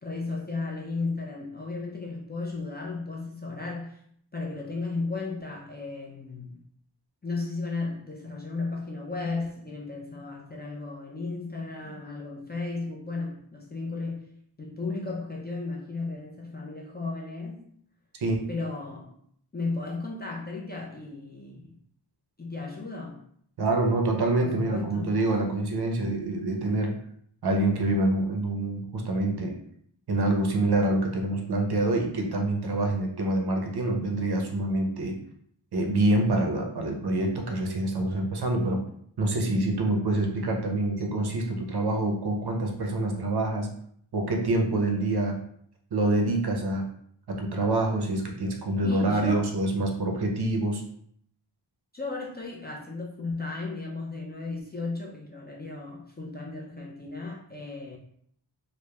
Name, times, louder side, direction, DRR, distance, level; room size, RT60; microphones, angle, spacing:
voice 1, 0.0-4.0 4.3-6.6 7.2-14.3 14.6-17.7 18.5-19.2 19.5-21.8 22.4-23.2 24.4-25.1 48.8-49.5 51.9-58.0, left 3 dB, 25° left, 0.3 m, -35 dB
voice 2, 23.6-27.0 27.4-29.6 30.1-35.2 35.7-38.8 39.2-43.7 44.1-45.4 45.9-46.8 47.3-50.8, right 2 dB, 55° right, 0.6 m, -26 dB
2.9 x 2.1 x 2.2 m
wide cardioid pair, 65°, 47 cm